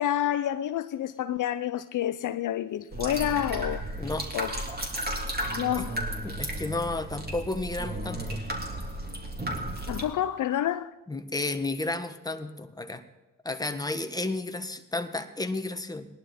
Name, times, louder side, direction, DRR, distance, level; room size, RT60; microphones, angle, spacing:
voice 1, 0.0-4.0 4.3-4.5 5.6-6.0 9.9-10.9, left 11 dB, 60° left, 0.6 m, -28 dB
sound 1, 2.9-10.0, right 1 dB, 25° right, 3.3 m, -34 dB
voice 2, 4.0-4.3 6.2-8.4 11.1-13.0 13.4-16.1, left 2 dB, 10° left, 1.4 m, -32 dB
19.0 x 11.5 x 4.3 m
supercardioid pair, 60°, 35 cm